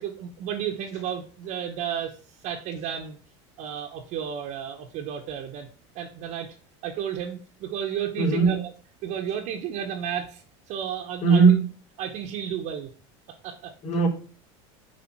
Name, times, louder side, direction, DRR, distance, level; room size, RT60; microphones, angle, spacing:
voice 1, 0.0-2.2 2.4-3.2 3.6-5.7 5.9-6.5 6.8-8.7 9.0-10.4 10.7-11.4 12.0-12.9 13.4-13.7, right 9 dB, 55° right, 1 dB, 1.4 m, -32 dB
voice 2, 8.2-8.6 11.2-11.6 13.8-14.1, right 5 dB, 50° left, -1 dB, 3.7 m, -18 dB
11.0 x 5.0 x 4.8 m, 0.40 s
supercardioid pair, 125°, 15 cm